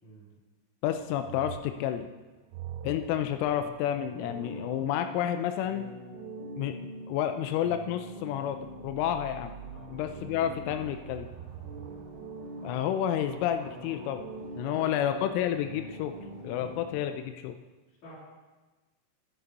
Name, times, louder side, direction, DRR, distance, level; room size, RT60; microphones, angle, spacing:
voice 1, 0.8-2.1 2.8-5.9 6.6-6.7 7.1-9.5 9.9-11.3 12.6-14.2 14.6-16.1 16.4-17.6, left 10 dB, 90° left, 8 dB, 3.1 m, -30 dB
sound 1, 0.9-5.5 8.5-14.6 15.6-16.2, right 12 dB, 80° right, 2.7 m, -47 dB
sound 2, 4.2-16.9, right 1 dB, 55° right, 2.3 m, -44 dB
voice 2, 9.7-10.0 11.7-12.0 14.6-15.0 16.4-16.7 17.9-18.2, equal, 40° left, -7 dB, 4.1 m, -50 dB
sound 3, 10.2-16.9, left 2 dB, 65° left, 4.1 m, -57 dB
11.5 x 9.6 x 4.1 m, 1.2 s
omnidirectional pair, 5.5 m